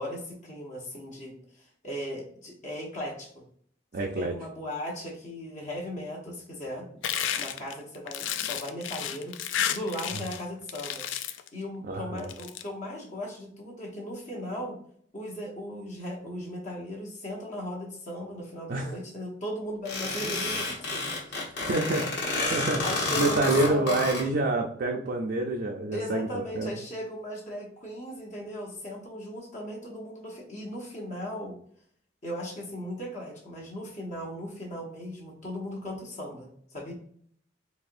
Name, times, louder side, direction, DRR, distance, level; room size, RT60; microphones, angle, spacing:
voice 1, 0.0-3.4 4.0-6.9 7.4-9.4 9.7-14.8 15.1-21.7 22.4-24.0 25.9-31.5 32.2-36.9, equal, 40° left, -1 dB, 0.8 m, -37 dB
voice 2, 3.9-4.3 11.9-12.3 18.7-18.9 21.3-22.0 22.5-22.8 23.2-26.3 26.6-26.7, right 2 dB, 50° right, 1 dB, 0.4 m, -27 dB
sound 1, 7.0-10.4 10.7-11.5 12.2-12.6, left 9 dB, 80° left, 0.3 m, -32 dB
sound 2, 19.9-24.2, left 2 dB, 65° left, 1.3 m, -30 dB
4.1 x 2.8 x 2.5 m, 0.63 s
head